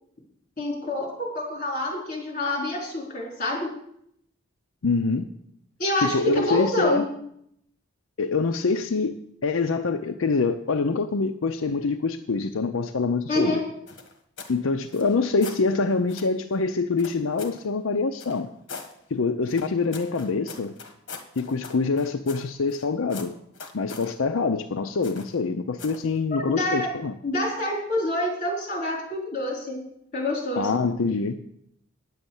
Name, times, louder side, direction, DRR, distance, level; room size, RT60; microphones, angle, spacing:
voice 1, 0.6-3.7 5.8-7.1 13.3-13.6 26.3-26.9 27.2-29.8 30.1-30.8, left 1 dB, 40° left, -1 dB, 4.0 m, -27 dB
voice 2, 4.8-5.3 6.0-7.0 8.2-9.2 9.4-13.6 14.5-18.5 19.1-20.7 21.4-23.3 23.7-27.1 30.6-31.3, left 4 dB, 80° left, 6 dB, 0.6 m, -25 dB
sound 1, 13.9-14.6 14.9-15.6 16.1-16.3 17.0-17.6 18.2-18.9 19.5-22.8 23.1-24.1 25.0-25.4 25.8-26.1, left 4 dB, 60° left, 1.5 m, -41 dB
9.9 x 7.8 x 7.1 m, 0.72 s
head